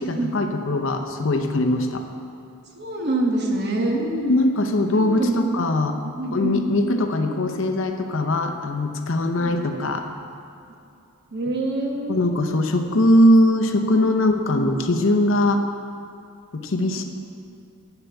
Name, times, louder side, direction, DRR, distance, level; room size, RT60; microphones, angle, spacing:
voice 1, 0.0-2.0 3.9-5.9 6.3-10.1 12.1-15.6 16.5-17.0, left 1 dB, 60° left, 5 dB, 0.7 m, -21 dB
voice 2, 2.8-4.0 4.9-5.4 6.0-6.7 9.4-9.6 11.3-12.6 16.8-17.0, right 2 dB, 50° right, 0 dB, 1.2 m, -26 dB
8.3 x 6.7 x 6.9 m, 2.6 s
head